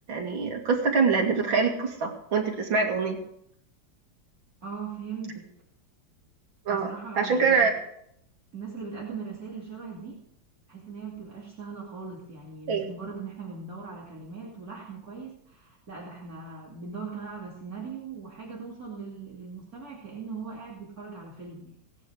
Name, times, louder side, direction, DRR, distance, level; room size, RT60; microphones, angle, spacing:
voice 1, 0.1-3.2 6.7-7.7 12.7-12.9, right 5 dB, 80° right, 2 dB, 3.0 m, -25 dB
voice 2, 4.6-5.5 6.7-7.8 8.5-10.2 10.7-21.8, right 5 dB, 45° right, -5 dB, 3.1 m, -40 dB
17.5 x 11.0 x 4.9 m, 0.70 s
omnidirectional pair, 2.1 m